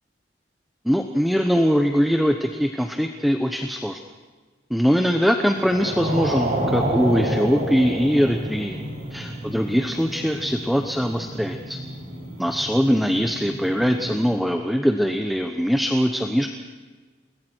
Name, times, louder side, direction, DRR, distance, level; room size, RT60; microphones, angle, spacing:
voice 1, 0.8-4.0 4.7-8.8 9.1-11.8 12.4-16.5, equal, ahead, 4 dB, 1.0 m, -22 dB
sound 1, 5.5-14.2, right 1 dB, 45° right, 6.8 m, -29 dB
29.0 x 21.0 x 4.6 m, 1.4 s
head